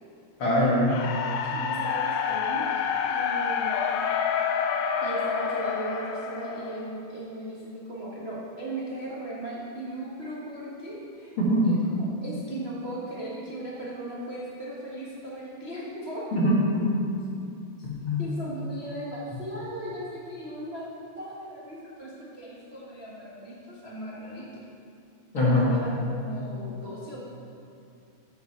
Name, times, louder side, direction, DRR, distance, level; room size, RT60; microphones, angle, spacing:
voice 1, 0.4-0.9 11.4-11.8 16.3-16.8 17.8-18.2 25.3-25.7, equal, 45° left, -6 dB, 2.6 m, -22 dB
sound 1, 0.9-7.0, left 7 dB, 85° left, 2.2 m, -28 dB
voice 2, 1.5-3.9 5.0-11.3 11.6-16.3 18.2-20.9 21.2-24.6 25.3-27.2, right 1 dB, 65° right, -7 dB, 0.6 m, -37 dB
13.5 x 7.1 x 4.5 m, 2.6 s
omnidirectional pair, 3.6 m